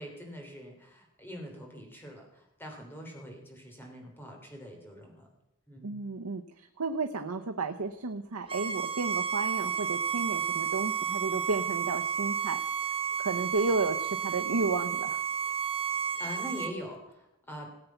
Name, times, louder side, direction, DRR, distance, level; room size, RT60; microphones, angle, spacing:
voice 1, 0.0-5.3 5.7-5.9 16.2-17.7, equal, 10° left, 1 dB, 3.4 m, -43 dB
voice 2, 5.8-12.6 13.2-15.2, right 3 dB, 85° right, 5 dB, 0.9 m, -32 dB
Bowed string instrument, 8.5-16.7, right 7 dB, 25° right, 1.1 m, -32 dB
18.0 x 8.0 x 5.8 m, 0.90 s
head